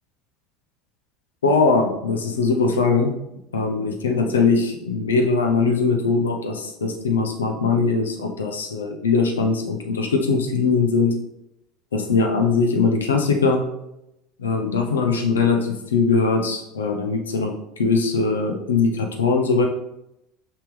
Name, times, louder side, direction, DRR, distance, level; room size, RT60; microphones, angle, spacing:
voice 1, 1.4-3.1 3.5-11.1 11.9-13.6 14.4-19.6, left 4 dB, 80° left, 3 dB, 0.8 m, -21 dB
5.7 x 5.2 x 3.2 m, 0.84 s
hypercardioid pair, 75°, 0 cm